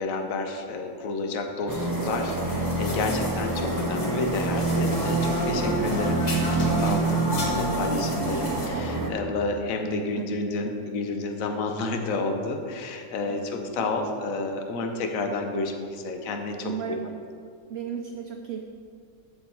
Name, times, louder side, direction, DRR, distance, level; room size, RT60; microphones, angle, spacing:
voice 1, 0.0-16.7, left 3 dB, 70° left, 4 dB, 1.2 m, -30 dB
sound 1, 1.7-8.7, equal, 30° left, 1.3 m, -33 dB
sound 2, 1.7-9.1, right 2 dB, 25° right, 0.5 m, -27 dB
voice 2, 9.9-10.3 10.7-10.8 13.3-13.9 14.8-14.9 16.6-17.1 17.7-18.6, right 7 dB, 65° right, 3 dB, 0.7 m, -36 dB
13.0 x 4.7 x 4.4 m, 2.2 s
omnidirectional pair, 1.5 m